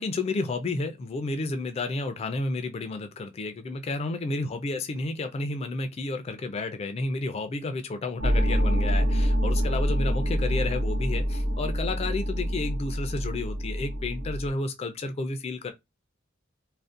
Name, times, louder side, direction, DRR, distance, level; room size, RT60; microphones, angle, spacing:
voice 1, 0.0-15.7, left 3 dB, 30° left, 0.3 m, -31 dB
sound 1, 8.2-14.5, equal, 75° right, 0.8 m, -26 dB
2.5 x 2.0 x 2.4 m
head